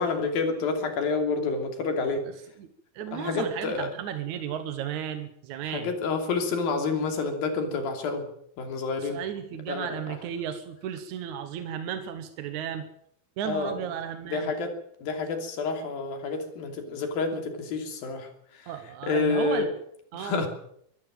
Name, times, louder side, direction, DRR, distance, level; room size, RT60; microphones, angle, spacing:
voice 1, 0.0-2.3 3.1-3.9 5.7-8.3 8.6-9.2 9.7-10.2 13.5-13.8 14.3-14.7 15.0-18.7 19.0-19.7 20.1-20.5, left 4 dB, 65° left, 5 dB, 4.6 m, -29 dB
voice 2, 2.9-5.9 9.0-12.9 13.4-14.5 18.7-19.7 20.1-20.4, right 9 dB, 65° right, 9 dB, 2.1 m, -34 dB
24.0 x 14.0 x 7.7 m, 0.69 s
omnidirectional pair, 4.6 m